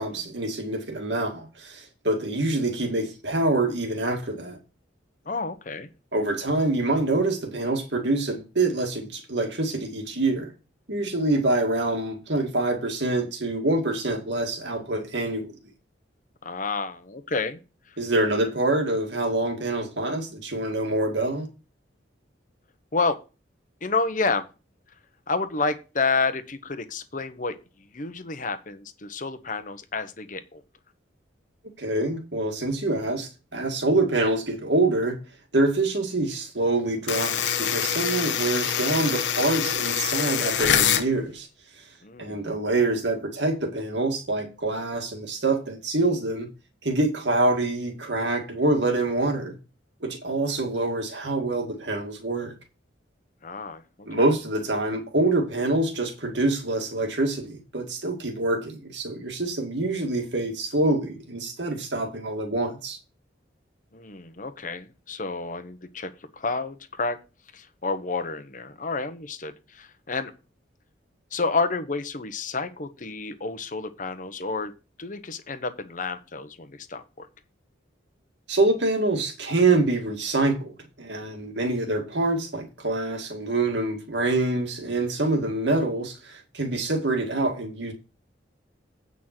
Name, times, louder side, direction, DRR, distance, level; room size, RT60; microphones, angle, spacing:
voice 1, 0.0-4.6 6.1-10.5 10.9-15.6 18.0-21.5 31.8-35.2 35.5-41.5 41.8-41.9 42.2-46.5 46.8-49.6 50.0-52.5 54.1-63.0 78.5-87.9, right 2 dB, 65° right, 2.3 m, -26 dB
voice 2, 5.2-5.9 16.4-17.6 17.9-18.0 22.9-23.2 23.8-24.4 25.3-30.6 42.0-42.5 53.4-53.8 63.9-66.1 66.4-67.2 67.5-70.3 71.3-74.7 75.0-77.3, left 4 dB, 45° left, 1.1 m, -30 dB
sound 1, 37.1-41.1, left 8 dB, 70° left, 1.0 m, -25 dB
9.0 x 5.6 x 6.0 m
head